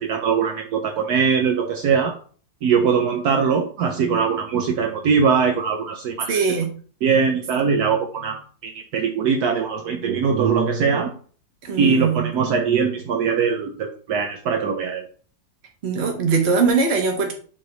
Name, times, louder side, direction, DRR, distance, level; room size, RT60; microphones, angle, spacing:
voice 1, 0.0-2.1 2.6-6.4 7.0-11.1 11.8-15.0, right 6 dB, 70° right, 4 dB, 1.2 m, -21 dB
voice 2, 6.3-6.7 11.6-12.3 15.8-17.3, right 4 dB, 40° right, 2 dB, 1.4 m, -21 dB
7.8 x 3.3 x 4.0 m, 0.42 s
omnidirectional pair, 1.8 m